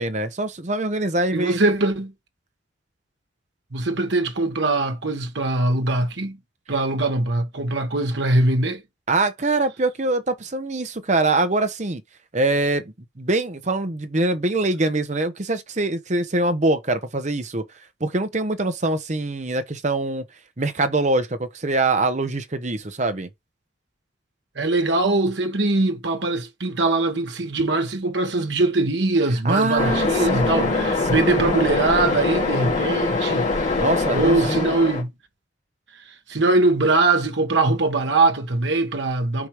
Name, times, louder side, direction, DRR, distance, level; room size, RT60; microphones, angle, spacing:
voice 1, 0.0-1.6 9.1-12.0 12.3-17.6 18.0-20.2 20.6-23.3 29.4-31.6 33.8-34.7, right 2 dB, 40° right, 0.9 m, -24 dB
voice 2, 1.3-2.1 3.7-6.4 6.7-8.8 24.5-33.8 34.1-35.1 36.1-39.5, right 2 dB, 70° right, 1.3 m, -22 dB
Waves surf, 29.8-35.0, left 3 dB, 40° left, 2.9 m, -23 dB
4.9 x 4.5 x 4.7 m
head